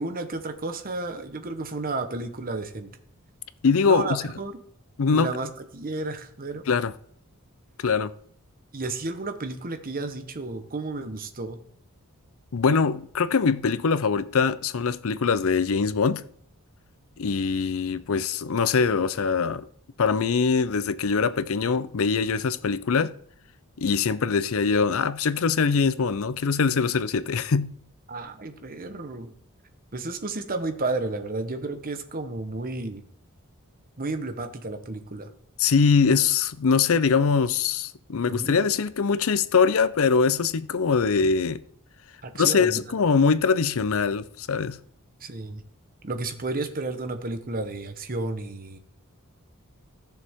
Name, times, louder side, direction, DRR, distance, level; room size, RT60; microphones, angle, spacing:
voice 1, 0.0-2.9 3.8-4.6 5.1-6.7 8.7-11.6 28.1-29.3 29.9-33.0 34.0-35.3 38.3-38.5 42.2-42.8 45.2-45.6 46.0-48.8, right 3 dB, 40° right, 1.1 m, -32 dB
voice 2, 3.6-4.2 5.0-5.3 6.7-6.9 7.8-8.1 12.5-16.2 17.2-19.7 20.0-23.1 23.8-27.8 35.6-41.6 42.3-44.8, left 5 dB, 65° left, 0.5 m, -23 dB
15.0 x 6.9 x 3.6 m
head